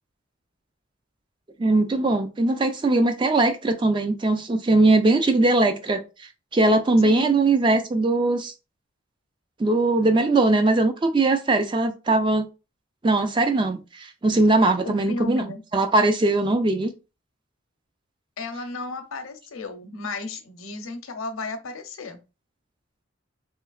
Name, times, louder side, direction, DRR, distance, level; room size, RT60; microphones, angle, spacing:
voice 1, 1.6-6.0 6.5-8.5 9.6-12.5 13.0-15.5 15.7-16.9, right 2 dB, 25° right, 0.3 m, -20 dB
voice 2, 7.0-7.4 14.8-15.6 18.4-22.2, left 3 dB, 85° left, 0.6 m, -34 dB
3.1 x 2.7 x 2.3 m
head